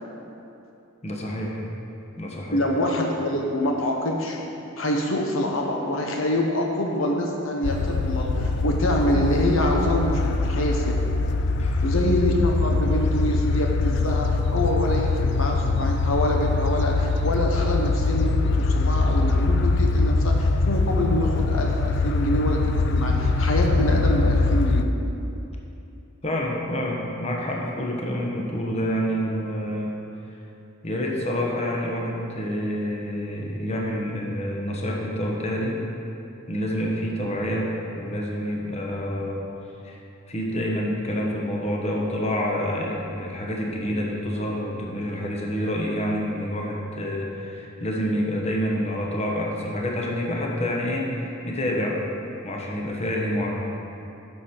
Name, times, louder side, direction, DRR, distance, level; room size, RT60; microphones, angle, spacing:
voice 1, 1.0-1.6 2.2-2.6 11.6-11.8 26.2-29.9 30.8-35.8 36.5-39.4 39.8-40.0 40.3-52.0 52.4-53.5, equal, 30° left, -1 dB, 1.1 m, -28 dB
voice 2, 2.5-4.4 4.8-10.9 11.8-25.0, left 1 dB, 75° left, 1 dB, 0.9 m, -25 dB
sound 1, 7.6-24.8, left 3 dB, 55° left, 0.4 m, -23 dB
9.9 x 6.6 x 4.4 m, 2.8 s
head